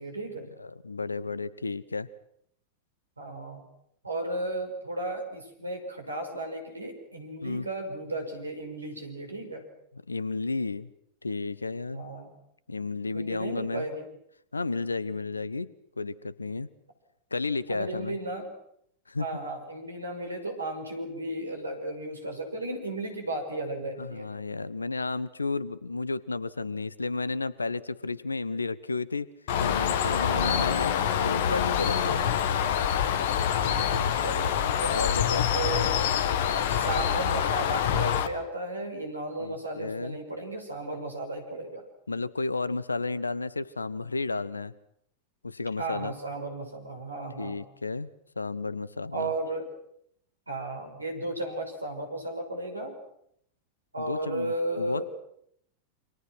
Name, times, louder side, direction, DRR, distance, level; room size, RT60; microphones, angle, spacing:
voice 1, 0.0-0.5 3.2-3.6 4.0-9.6 11.9-12.3 13.1-14.0 17.7-18.5 19.2-24.3 30.3-30.7 32.0-32.4 33.6-35.0 35.5-36.0 36.7-41.8 45.8-47.6 49.1-49.6 50.5-52.9 53.9-55.0, right 2 dB, 80° right, 4 dB, 5.9 m, -34 dB
voice 2, 0.6-2.1 7.4-7.7 10.1-10.9 11.2-12.0 12.7-13.8 14.5-15.7 16.0-16.7 17.3-18.2 19.1-19.3 24.0-29.3 29.6-32.2 34.5-35.9 39.4-40.2 42.1-44.7 45.4-46.1 47.4-48.1 48.4-49.3 54.0-55.0, left 3 dB, 80° left, 20 dB, 1.0 m, -32 dB
Bird, 29.5-38.3, left 9 dB, 55° left, 1.7 m, -26 dB
28.5 x 26.0 x 6.2 m, 0.73 s
figure-of-eight pair, 90°, 0 cm